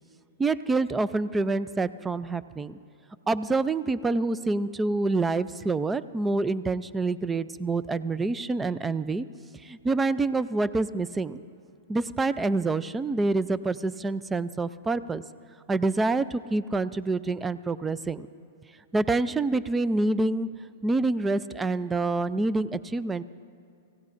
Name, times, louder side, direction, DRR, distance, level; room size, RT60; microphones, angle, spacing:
voice 1, 0.4-2.8 3.3-9.3 9.6-11.4 11.9-15.2 15.7-18.3 18.9-20.5 20.8-23.2, right 3 dB, 10° right, 16 dB, 0.4 m, -27 dB
25.5 x 16.0 x 2.5 m, 2.6 s
hypercardioid pair, 135°, 0 cm